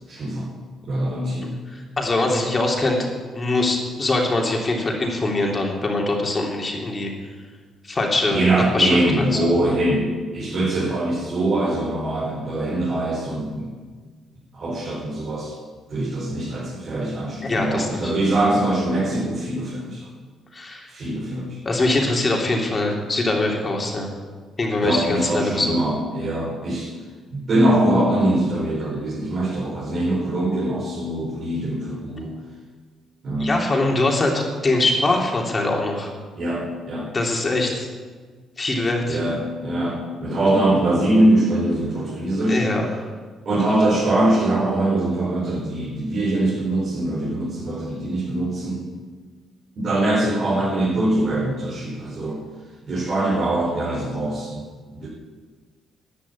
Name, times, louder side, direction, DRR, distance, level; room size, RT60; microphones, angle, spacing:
voice 1, 0.1-0.5 0.8-1.5 8.3-13.7 14.5-15.5 15.9-20.1 20.9-21.6 24.8-26.9 27.3-32.4 33.2-33.6 36.4-37.1 39.1-42.6 43.5-48.9 49.8-52.4 52.9-54.7 54.9-55.1, right 1 dB, 50° right, -6 dB, 5.2 m, -22 dB
voice 2, 1.7-3.0 3.3-7.1 7.8-8.4 8.7-8.9 9.2-9.5 17.4-18.1 20.5-20.9 21.6-24.1 24.6-25.7 33.4-36.1 37.1-37.9 38.6-39.2 42.5-42.9, left 2 dB, 30° left, 0 dB, 3.0 m, -22 dB
11.5 x 11.0 x 8.6 m, 1.5 s
cardioid pair, 90°, 0 cm